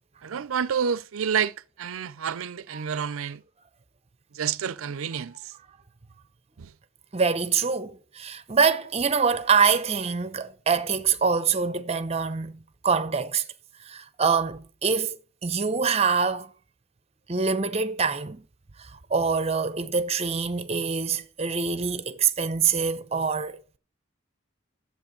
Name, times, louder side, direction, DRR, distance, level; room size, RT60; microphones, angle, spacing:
voice 1, 0.2-3.4 4.3-5.5 6.6-6.7, right 7 dB, 85° right, 0.5 m, -29 dB
voice 2, 7.1-13.4 13.9-15.2 15.4-16.5 17.3-18.4 19.1-23.8, right 5 dB, 30° right, 0.7 m, -25 dB
11.5 x 7.7 x 5.2 m
head